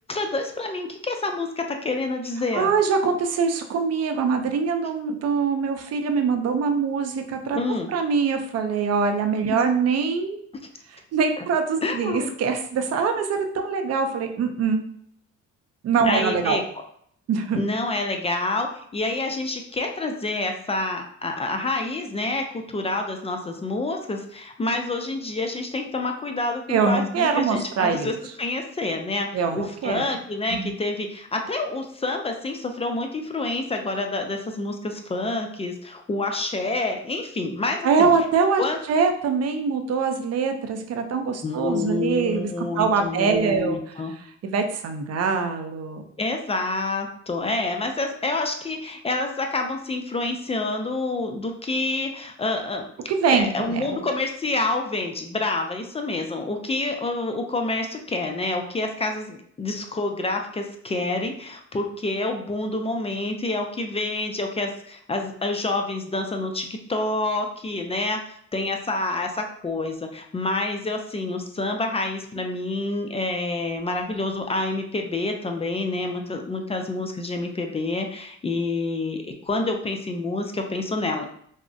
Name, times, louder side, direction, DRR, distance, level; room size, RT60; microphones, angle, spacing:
voice 1, 0.1-2.7 7.6-7.9 9.5-9.6 11.8-12.3 16.0-16.6 17.5-18.7 18.9-38.1 38.6-38.8 41.4-44.1 46.2-52.9 53.3-68.2 68.5-81.3, left 2 dB, 20° left, 4 dB, 0.3 m, -28 dB
voice 2, 2.5-7.6 7.9-10.4 11.1-14.8 15.8-16.6 17.3-17.6 26.7-28.1 29.3-30.0 30.5-30.7 37.8-43.8 44.4-46.0 53.1-54.0, right 5 dB, 55° right, 6 dB, 0.5 m, -23 dB
3.4 x 2.0 x 2.6 m, 0.66 s
cardioid pair, 90°, 30 cm